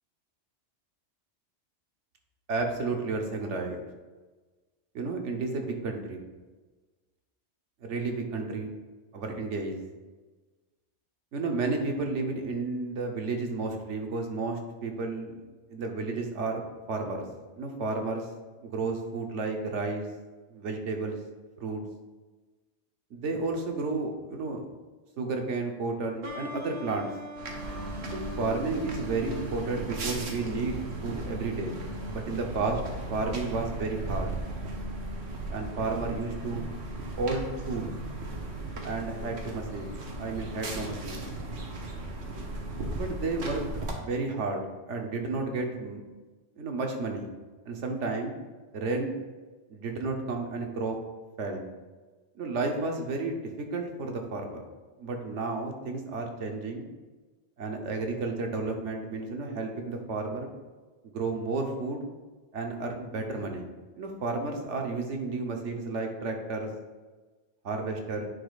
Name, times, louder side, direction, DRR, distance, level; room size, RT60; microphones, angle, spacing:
voice 1, 2.5-3.8 4.9-6.2 7.8-8.7 9.1-9.8 11.3-15.4 15.7-17.2 17.5-18.3 18.6-20.0 20.5-21.2 21.6-21.8 23.1-24.7 25.2-27.1 28.1-30.8 31.0-31.7 32.1-32.8 33.1-34.3 35.5-36.6 37.2-37.9 38.8-41.2 42.9-46.0 46.6-47.3 47.6-48.4 48.7-49.1 49.7-51.0 51.4-51.6 52.3-54.6 55.0-56.9 57.6-60.5 61.0-62.1 62.5-63.7 64.0-66.7 67.6-68.2, right 3 dB, 85° right, 3 dB, 1.2 m, -32 dB
sound 1, 26.2-31.7, equal, 50° right, 1.0 m, -42 dB
sound 2, 27.4-43.9, right 2 dB, 65° right, 1.2 m, -36 dB
9.8 x 5.1 x 2.4 m, 1.3 s
omnidirectional pair, 1.2 m